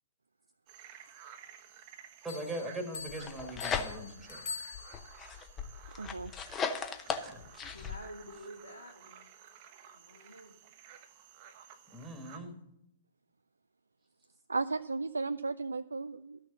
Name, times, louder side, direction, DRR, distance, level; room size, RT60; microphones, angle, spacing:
sound 1, 0.7-12.4, right 8 dB, 40° right, 0.8 m, -54 dB
voice 1, 2.2-4.4 7.2-7.4 11.9-12.6, right 1 dB, 5° right, 3 dB, 1.5 m, -40 dB
Bell, 2.3-5.3, left 5 dB, 50° left, 1.0 m, -45 dB
sound 2, 3.1-4.3 4.7-8.0, left 6 dB, 20° left, 0.7 m, -37 dB
voice 2, 6.0-6.3 14.5-16.4, right 3 dB, 80° right, 10 dB, 0.3 m, -34 dB
voice 3, 7.7-9.3 9.9-10.5, equal, 90° left, -1 dB, 1.5 m, -49 dB
12.5 x 6.4 x 7.2 m, 0.87 s
figure-of-eight pair, 115°, 0 cm